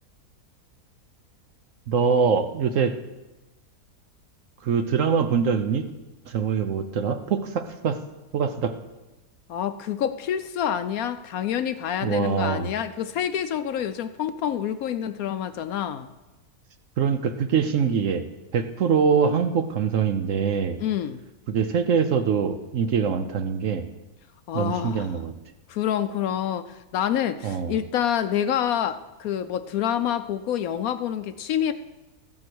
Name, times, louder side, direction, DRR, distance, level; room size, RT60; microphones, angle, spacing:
voice 1, 1.9-2.9 4.6-5.8 6.3-8.0 8.3-8.7 12.0-12.7 17.0-18.3 18.5-20.8 21.5-23.9 24.5-25.3 27.4-27.8, right 6 dB, 60° right, 9 dB, 0.9 m, -23 dB
voice 2, 9.5-16.1 20.8-21.2 24.5-25.1 25.7-31.7, left 9 dB, 70° left, 11 dB, 0.9 m, -27 dB
14.0 x 7.6 x 6.1 m, 1.1 s
omnidirectional pair, 1.7 m